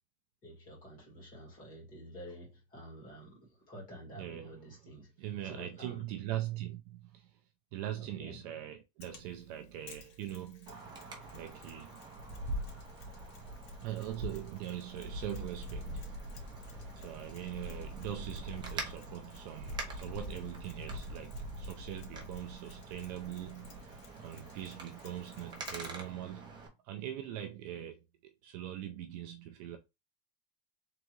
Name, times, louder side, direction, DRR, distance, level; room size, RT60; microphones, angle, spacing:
voice 1, 0.4-5.1 5.4-6.0 8.0-8.4, equal, 25° left, 2.5 m, -50 dB
voice 2, 4.1-4.8 5.2-7.4 7.7-10.8 11.3-12.0 13.8-16.0 17.0-26.6 26.8-29.8, right 12 dB, 40° right, 0.4 m, -42 dB
Mechanisms, 9.0-26.1, left 3 dB, 80° left, 2.0 m, -58 dB
Wind, 10.7-26.7, right 1 dB, 15° right, 0.8 m, -44 dB
3.8 x 3.4 x 3.1 m
supercardioid pair, 175°, 33 cm